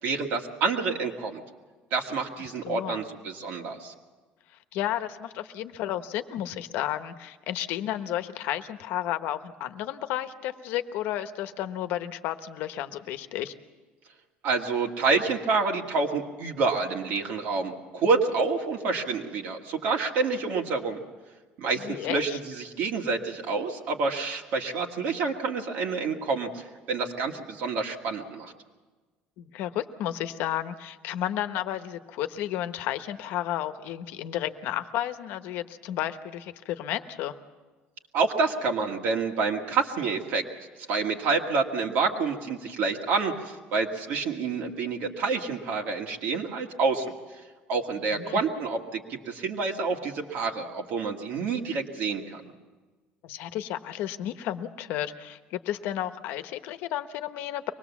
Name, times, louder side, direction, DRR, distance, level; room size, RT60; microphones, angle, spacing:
voice 1, 0.0-1.4 1.9-3.9 14.4-21.0 21.6-28.5 38.1-40.4 40.9-47.1 47.7-52.5, right 4 dB, 60° right, 1 dB, 2.0 m, -28 dB
voice 2, 2.6-3.0 4.7-13.5 21.8-22.4 29.4-37.3 48.1-48.4 53.2-57.7, left 12 dB, 65° left, 10 dB, 1.1 m, -32 dB
24.0 x 20.0 x 7.2 m, 1.3 s
cardioid pair, 160°, 4 cm